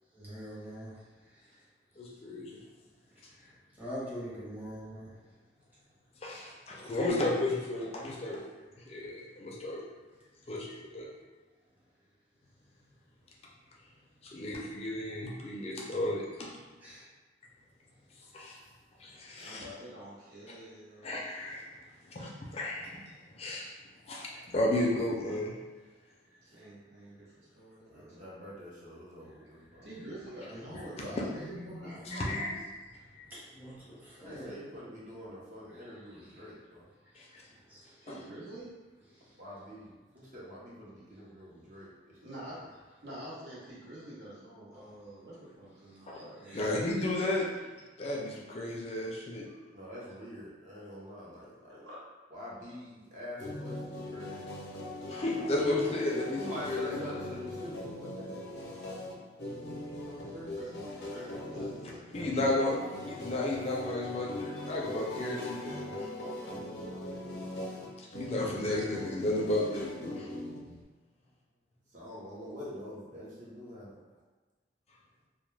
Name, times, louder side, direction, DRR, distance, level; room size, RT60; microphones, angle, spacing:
voice 1, 0.1-1.7 1.9-2.2 3.1-5.4 16.8-17.1 21.9-22.1 26.3-26.4 27.5-28.3 29.3-29.4 29.7-29.9 30.5-32.5 32.9-34.6 34.9-35.0 35.7-36.5 37.0-38.1 39.1-39.4 42.2-42.3 44.7-44.9 45.9-46.1 46.4-46.7, equal, 10° right, -9 dB, 0.8 m, -46 dB
voice 2, 2.0-2.6 6.2-8.4 8.9-9.8 10.5-11.1 14.2-16.5 18.3-18.6 19.0-19.6 21.0-21.6 22.1-23.0 23.3-23.7 24.1-25.5 32.1-32.5 33.1-33.3 37.2-37.4 38.1-38.2 46.1-46.2 46.5-47.5 48.0-49.5 55.1-57.0 62.1-62.8 63.0-66.1 68.0-70.3, left 1 dB, 35° left, -3 dB, 0.4 m, -33 dB
voice 3, 19.4-21.2 26.4-28.2 29.8-32.6 38.0-38.7 42.2-46.8 51.7-52.0 55.0-55.8 60.5-62.3, right 1 dB, 70° right, -7 dB, 0.9 m, -47 dB
voice 4, 27.9-29.9 34.2-36.9 39.4-42.4 49.7-51.8 52.3-54.8 56.3-58.3 59.9-60.8 66.8-67.5 71.9-73.9, equal, 45° right, -6 dB, 0.7 m, -46 dB
sound 1, 53.4-70.8, left 1 dB, 85° left, 0.6 m, -41 dB
2.2 x 2.1 x 3.1 m, 1.3 s
head